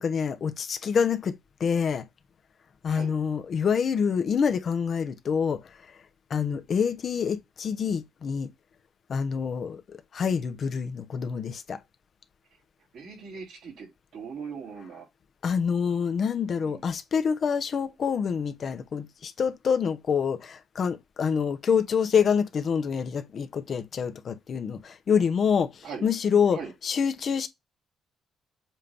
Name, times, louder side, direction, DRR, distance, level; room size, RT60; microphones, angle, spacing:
voice 1, 0.0-1.3 1.6-2.0 2.8-5.6 6.3-8.5 9.1-9.8 10.1-11.8 15.4-27.5, left 6 dB, 55° left, 1.0 m, -26 dB
voice 2, 12.9-15.0 16.5-16.8 25.8-26.0 26.5-26.7, right 5 dB, 80° right, 3.9 m, -40 dB
7.4 x 2.8 x 5.3 m
cardioid pair, 90°, 0 cm